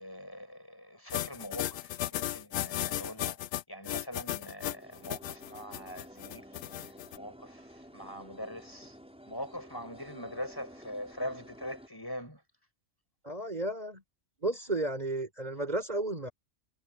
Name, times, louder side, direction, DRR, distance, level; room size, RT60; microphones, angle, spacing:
voice 1, 0.0-9.0 9.3-12.4, equal, 15° left, 5.8 m, -43 dB
sound 1, 1.1-7.2, left 14 dB, 85° left, 1.0 m, -35 dB
sound 2, 4.7-11.9, equal, 5° right, 6.3 m, -52 dB
voice 2, 13.2-14.0 14.4-16.3, right 2 dB, 30° right, 4.3 m, -33 dB
omnidirectional pair, 1.3 m